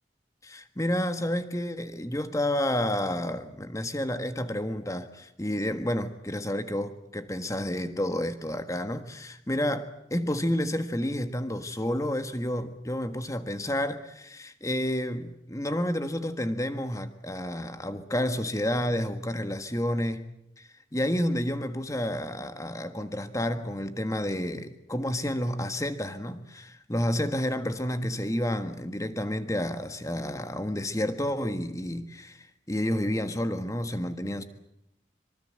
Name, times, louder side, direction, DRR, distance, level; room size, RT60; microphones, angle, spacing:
voice 1, 0.4-20.2 20.6-34.4, left 1 dB, 20° left, 1.5 m, -30 dB
25.0 x 23.5 x 7.7 m
head